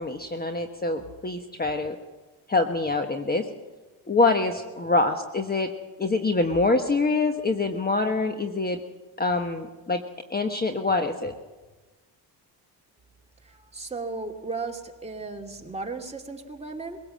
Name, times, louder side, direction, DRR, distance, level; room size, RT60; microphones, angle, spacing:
voice 1, 0.0-2.0 2.5-3.5 4.1-5.7 6.0-8.8 9.2-10.0 10.3-11.3, left 3 dB, 20° left, 6 dB, 1.3 m, -25 dB
voice 2, 13.4-17.0, right 3 dB, 15° right, 1 dB, 2.5 m, -35 dB
22.0 x 17.5 x 7.6 m, 1.2 s
cardioid pair, 100°, 44 cm